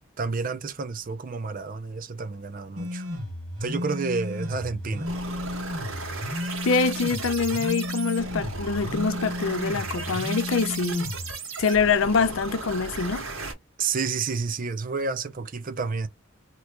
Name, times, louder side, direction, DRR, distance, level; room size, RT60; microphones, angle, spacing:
voice 1, 0.2-3.1 3.6-5.1 13.8-16.1, right 4 dB, 40° right, 0.5 m, -30 dB
sound 1, 2.8-11.3, left 1 dB, 70° right, 1.3 m, -33 dB
sound 2, 5.0-13.5, right 4 dB, 90° right, 1.3 m, -36 dB
voice 2, 6.6-11.1 11.6-13.3, left 5 dB, 70° left, 0.5 m, -25 dB
3.0 x 2.4 x 3.4 m
head